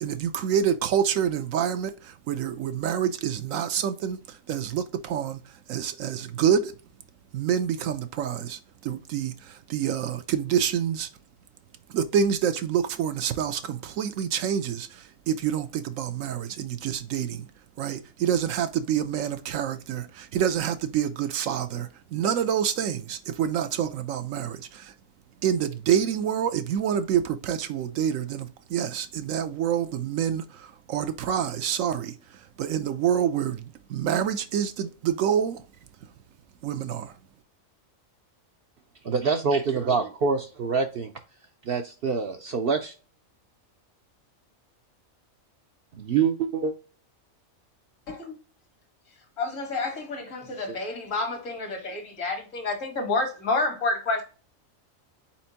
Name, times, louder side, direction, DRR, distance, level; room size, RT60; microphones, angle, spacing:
voice 1, 0.0-6.7 7.3-11.1 11.9-17.5 17.8-24.9 25.4-35.6 36.6-37.2, right 8 dB, 75° right, 1.0 m, -27 dB
voice 2, 39.0-41.1 41.7-42.9 45.9-46.7 50.7-50.8, right 5 dB, 60° right, 0.6 m, -25 dB
voice 3, 49.4-54.2, left 3 dB, 70° left, 1.8 m, -29 dB
4.3 x 4.3 x 2.8 m
omnidirectional pair, 1.4 m